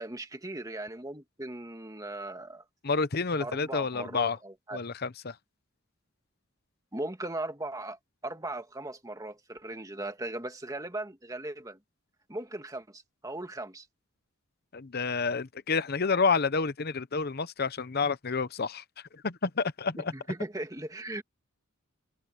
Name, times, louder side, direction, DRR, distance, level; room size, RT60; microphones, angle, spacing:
voice 1, 0.0-2.6 3.4-4.8 6.9-11.8 12.3-13.9 20.0-21.2, right 2 dB, 15° right, 2.0 m, -38 dB
voice 2, 2.8-4.4 4.7-5.3 14.7-18.8 19.2-20.1, left 4 dB, 50° left, 0.8 m, -29 dB
head